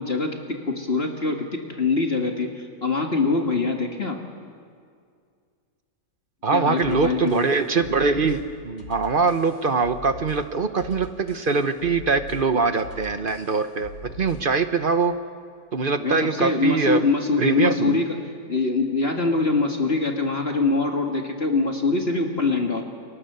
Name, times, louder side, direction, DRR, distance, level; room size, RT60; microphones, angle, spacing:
voice 1, 0.0-4.2 6.5-7.5 16.0-18.2 18.5-22.8, left 3 dB, 35° left, 3 dB, 2.0 m, -24 dB
voice 2, 6.4-13.9 14.2-15.1 15.7-17.0 17.4-18.0, right 4 dB, 40° right, 10 dB, 0.8 m, -23 dB
sound 1, 6.8-14.6, left 1 dB, 85° left, 3.1 m, -42 dB
30.0 x 23.0 x 6.8 m, 2.2 s
omnidirectional pair, 1.9 m